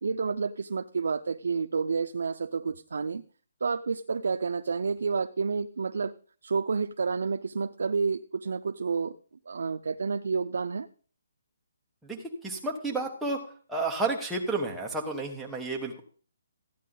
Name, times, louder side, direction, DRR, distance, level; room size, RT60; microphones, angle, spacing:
voice 1, 0.0-3.2 3.6-6.1 6.4-9.2 9.5-10.9, right 5 dB, 70° right, 9 dB, 0.5 m, -29 dB
voice 2, 12.4-13.4 13.7-16.0, right 3 dB, ahead, -2 dB, 1.2 m, -31 dB
14.5 x 9.2 x 3.9 m, 0.41 s
hypercardioid pair, 175°, 0 cm